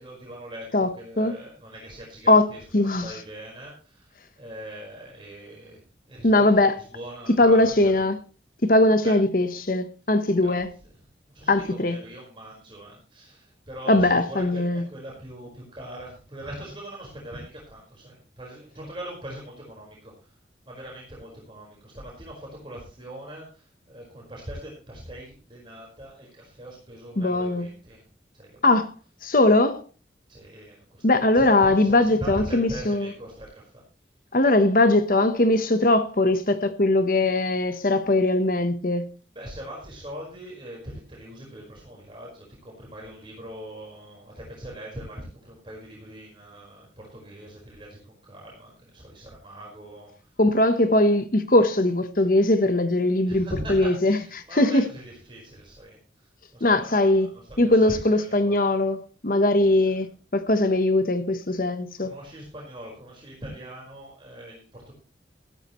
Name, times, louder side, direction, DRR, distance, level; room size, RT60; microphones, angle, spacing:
voice 1, 0.0-7.9 9.0-9.2 10.4-10.6 11.3-20.3 20.7-28.0 28.3-28.6 30.3-33.8 39.3-50.1 53.3-57.3 57.6-58.6 59.8-59.9 62.0-64.9, right 1 dB, 30° right, 4.9 m, -41 dB
voice 2, 0.7-1.3 2.3-3.1 6.2-6.8 7.4-8.2 8.6-10.7 11.5-12.0 13.9-14.8 27.2-27.7 28.6-28.9 29.2-29.8 31.0-33.1 34.3-39.0 50.4-54.2 54.5-54.9 56.6-59.0 59.2-60.1 60.3-62.1, left 2 dB, 50° left, 1.1 m, -20 dB
15.5 x 13.0 x 3.1 m
head